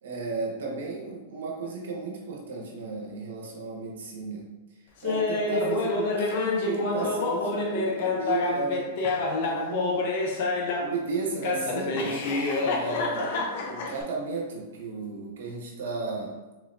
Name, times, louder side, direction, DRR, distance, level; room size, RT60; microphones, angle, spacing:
voice 1, 0.0-4.4 5.0-8.9 9.4-10.1 10.8-12.2 12.6-16.4, right 4 dB, 85° right, -1 dB, 1.2 m, -34 dB
Laughter, 5.0-11.0 11.4-14.0, left 3 dB, 55° left, 0.7 m, -27 dB
4.0 x 3.3 x 2.6 m, 1.1 s
supercardioid pair, 145°, 0 cm